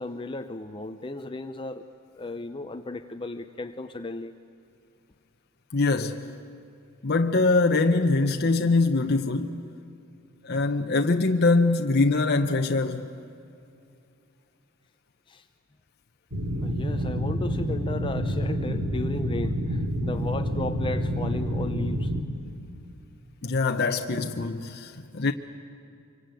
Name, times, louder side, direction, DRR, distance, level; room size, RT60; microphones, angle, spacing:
voice 1, 0.0-1.9 2.1-4.3 15.3-15.5 16.6-22.1, left 2 dB, 25° left, 0.6 m, -35 dB
voice 2, 5.7-6.3 7.0-9.6 10.4-13.1 23.4-25.3, left 3 dB, 50° left, 0.9 m, -23 dB
sound 1, 16.3-22.2, equal, 60° right, 2.5 m, -28 dB
25.0 x 23.5 x 9.1 m
head